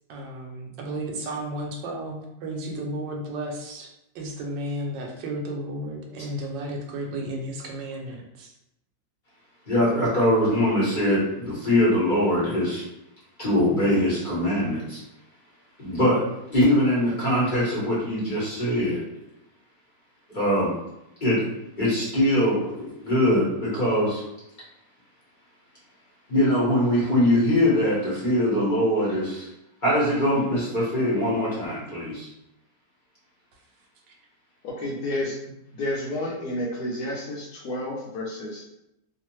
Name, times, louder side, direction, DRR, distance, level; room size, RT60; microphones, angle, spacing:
voice 1, 0.1-3.9 4.1-8.5, right 1 dB, 80° right, 1 dB, 1.2 m, -33 dB
voice 2, 9.7-12.8 13.4-15.0 15.8-16.2 16.5-19.0 20.3-20.8 21.2-21.4 21.8-24.2 26.3-29.5 29.8-32.3, left 1 dB, 35° left, -9 dB, 0.9 m, -22 dB
voice 3, 34.6-38.6, left 1 dB, 70° left, -3 dB, 1.0 m, -31 dB
3.1 x 2.1 x 3.0 m, 0.84 s
omnidirectional pair, 2.0 m